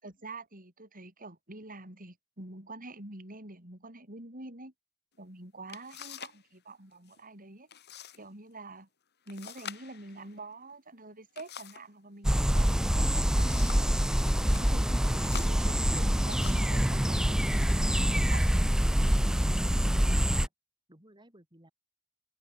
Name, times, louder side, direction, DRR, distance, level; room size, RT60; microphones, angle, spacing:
voice 1, 0.0-4.7 5.2-7.7 8.2-8.9 9.3-13.9 14.4-17.4 17.8-18.6 19.1-19.5, right 2 dB, 40° right, 7.4 m, -46 dB
sound 1, 5.2-5.3 5.7-6.4 6.7-7.2 7.7-8.2 8.5-8.6 9.3-11.9 12.9-14.0 14.4-14.7 15.2-16.8 17.6-17.8 18.3-18.8, left 8 dB, 55° left, 5.7 m, -46 dB
sound 2, 12.2-20.5, equal, 5° right, 0.5 m, -25 dB
voice 2, 19.8-20.5 20.9-21.7, right 1 dB, 20° right, 4.7 m, -58 dB
head